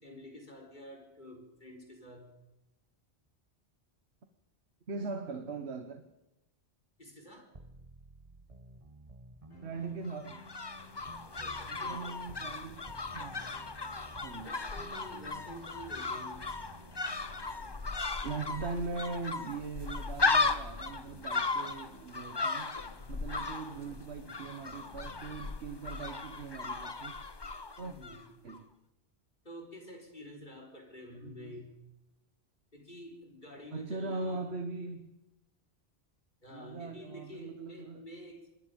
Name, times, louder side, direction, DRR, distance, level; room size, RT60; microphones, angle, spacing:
voice 1, 0.0-2.3 7.0-7.5 11.2-12.2 14.4-16.5 23.9-24.0 27.8-28.3 29.4-31.8 32.7-34.5 36.4-38.5, left 1 dB, 50° left, 1 dB, 4.7 m, -49 dB
voice 2, 4.9-6.0 9.6-10.4 11.7-12.9 13.1-13.4 14.2-14.6 18.2-22.8 23.1-27.2 27.8-27.9 28.4-28.7 31.2-31.6 33.7-35.1 36.5-38.1, right 4 dB, 85° right, 8 dB, 1.5 m, -40 dB
sound 1, 7.5-12.6 12.9-17.6, right 2 dB, 35° right, 1.5 m, -54 dB
sound 2, 9.5-25.5, left 2 dB, 65° left, 2.7 m, -59 dB
sound 3, 10.1-28.2 28.5-28.6, left 4 dB, 25° left, 0.8 m, -36 dB
24.5 x 22.5 x 5.3 m, 0.96 s
omnidirectional pair, 1.1 m